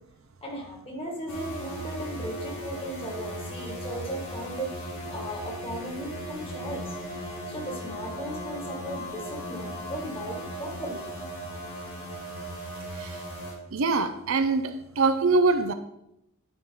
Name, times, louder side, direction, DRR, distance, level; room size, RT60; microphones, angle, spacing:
voice 1, 0.4-7.0 7.5-11.1, equal, 25° left, 1.7 m, -37 dB
sound 1, 1.3-13.5, equal, 65° left, 2.8 m, -37 dB
voice 2, 13.7-15.7, right 3 dB, 65° right, 0.5 m, -23 dB
10.0 x 4.8 x 3.8 m
head